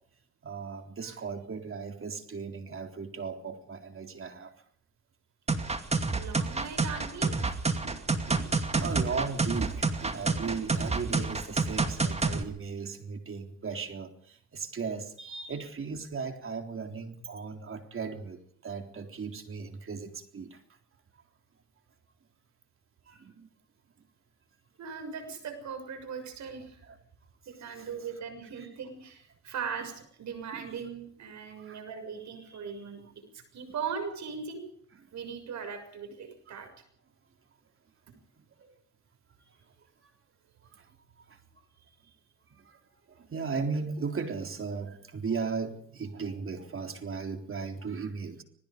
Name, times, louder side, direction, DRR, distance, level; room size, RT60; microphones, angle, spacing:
voice 1, 0.4-4.5 7.8-20.6 23.1-23.5 27.8-27.9 30.5-30.7 31.6-31.8 36.6-36.7 38.6-38.7 40.7-40.8 41.3-41.4 42.5-42.8 43.1-48.4, right 5 dB, 45° right, 5 dB, 3.8 m, -37 dB
sound 1, 5.5-12.4, right 3 dB, 20° right, 2.4 m, -28 dB
voice 2, 6.1-7.4 24.8-26.8 27.5-33.0 33.3-34.6 35.1-36.7, right 6 dB, 65° right, 8 dB, 6.7 m, -39 dB
27.0 x 20.0 x 5.3 m, 0.64 s
cardioid pair, 90°, 30 cm